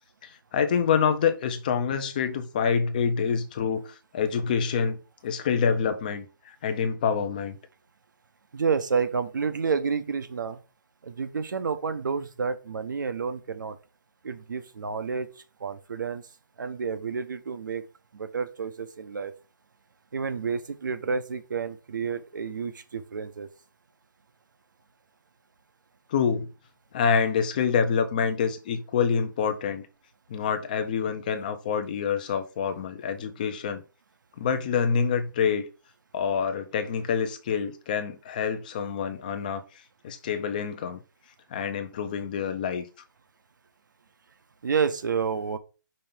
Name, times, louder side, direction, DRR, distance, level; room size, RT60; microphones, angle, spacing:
voice 1, 0.2-6.3 6.6-7.6 26.1-26.5 26.9-29.9 30.3-33.8 34.4-35.7 36.1-39.6 40.0-41.0 41.5-42.8, left 6 dB, 25° left, 0.6 m, -26 dB
voice 2, 8.5-10.6 11.0-13.8 14.2-15.3 15.6-16.2 16.6-17.8 18.1-19.3 20.1-23.5 44.6-45.6, right 5 dB, 65° right, 0.9 m, -29 dB
5.4 x 3.3 x 5.5 m
hypercardioid pair, 170°, 11 cm